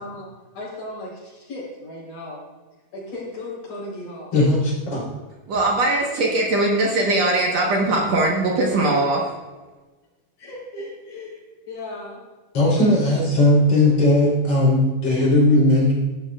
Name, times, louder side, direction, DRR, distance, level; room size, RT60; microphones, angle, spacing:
voice 1, 0.0-2.4 2.9-4.3 10.4-12.2 12.6-12.9 13.8-13.9, left 2 dB, 65° left, -4 dB, 5.6 m, -36 dB
voice 2, 4.3-5.0 12.5-15.9, left 1 dB, 45° left, -5 dB, 4.4 m, -17 dB
voice 3, 5.5-9.3, right 2 dB, 60° right, -2 dB, 2.1 m, -20 dB
16.0 x 11.5 x 2.4 m, 1.2 s
omnidirectional pair, 4.1 m